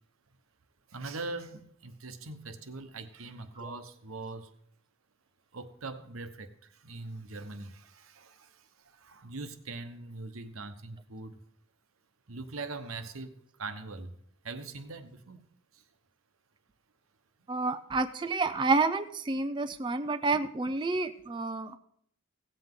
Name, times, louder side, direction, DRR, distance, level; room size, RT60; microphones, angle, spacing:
voice 1, 0.9-4.5 5.5-11.4 12.3-13.3 13.6-14.1 14.4-15.4 15.7-15.8, right 3 dB, 90° right, 9 dB, 1.0 m, -42 dB
voice 2, 17.5-21.8, right 3 dB, 25° right, 8 dB, 0.4 m, -29 dB
16.5 x 7.8 x 3.7 m, 0.68 s
head